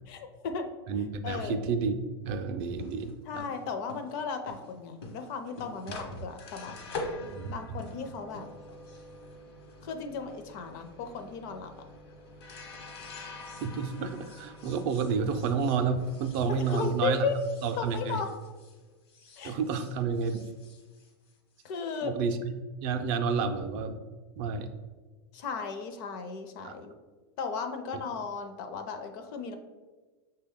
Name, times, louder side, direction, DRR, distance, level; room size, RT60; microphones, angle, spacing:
voice 1, 0.1-0.6 1.2-1.6 3.3-6.7 7.5-8.4 9.8-11.7 16.5-17.4 17.8-18.3 19.4-19.6 21.6-22.1 25.3-26.9 27.4-29.5, left 5 dB, 55° left, 6 dB, 0.6 m, -35 dB
voice 2, 0.9-3.4 5.9-6.0 7.3-7.6 13.6-17.2 17.6-18.2 19.4-20.4 22.0-24.0 24.4-24.7 26.6-26.7, right 5 dB, 45° right, 7 dB, 0.4 m, -30 dB
sound 1, 2.6-18.8 19.1-21.7, left 2 dB, 70° left, 1.0 m, -45 dB
5.9 x 2.2 x 3.5 m, 1.3 s
hypercardioid pair, 125°, 14 cm